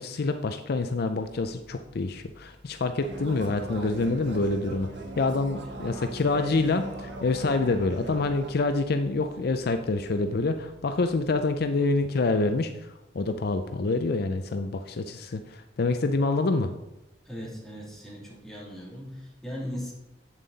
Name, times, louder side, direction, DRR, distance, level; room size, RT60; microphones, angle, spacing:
voice 1, 0.0-4.9 5.2-12.7 13.1-16.7, left 3 dB, 55° left, 8 dB, 0.5 m, -26 dB
Organ, 1.3-11.7, right 1 dB, 40° right, 1.0 m, -45 dB
sound 1, 3.0-8.5, right 2 dB, 70° right, 1.3 m, -42 dB
voice 2, 17.2-19.9, equal, ahead, -6 dB, 2.7 m, -38 dB
8.5 x 7.3 x 4.0 m, 0.93 s
head